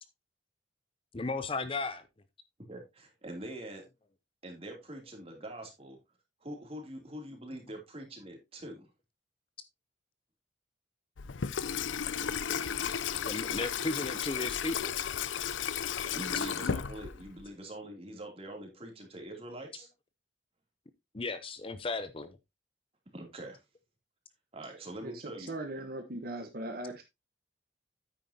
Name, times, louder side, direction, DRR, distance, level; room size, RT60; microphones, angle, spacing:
voice 1, 1.1-2.0 13.3-14.9 21.1-22.4, left 3 dB, 30° left, 0.6 m, -35 dB
voice 2, 2.7-3.8 4.4-6.0 6.4-8.9 16.1-19.9 23.1-23.6 24.5-25.9, right 1 dB, 30° right, 2.8 m, -44 dB
Water tap faucet / Sink (filling or washing), 11.2-17.4, left 7 dB, 85° left, 0.6 m, -34 dB
voice 3, 25.0-27.0, right 1 dB, 50° right, 1.2 m, -39 dB
9.4 x 8.7 x 2.8 m
head